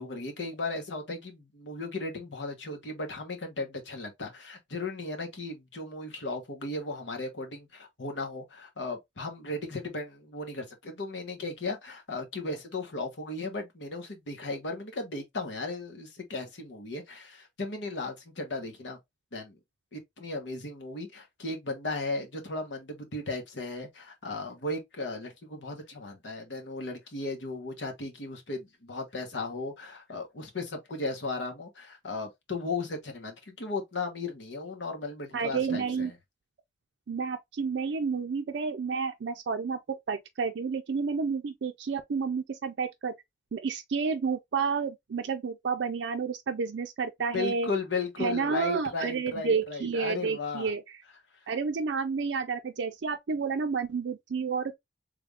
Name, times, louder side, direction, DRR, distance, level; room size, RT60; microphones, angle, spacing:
voice 1, 0.0-19.0 19.3-19.6 19.9-36.1 47.3-50.7, left 3 dB, 80° left, 1.1 m, -36 dB
voice 2, 35.3-36.1 37.1-43.2 43.5-47.7 48.2-50.8 51.5-54.8, right 5 dB, 75° right, 0.4 m, -30 dB
3.4 x 2.5 x 3.3 m
head